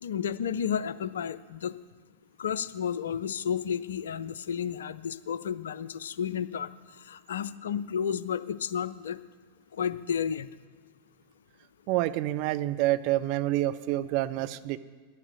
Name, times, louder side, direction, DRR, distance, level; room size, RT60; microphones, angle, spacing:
voice 1, 0.0-1.8 2.4-6.7 7.0-9.2 9.7-10.5, left 8 dB, 65° left, 14 dB, 0.4 m, -32 dB
voice 2, 11.9-14.8, right 15 dB, 45° right, 11 dB, 0.5 m, -27 dB
11.0 x 7.3 x 8.0 m, 1.5 s
figure-of-eight pair, 90°, 0 cm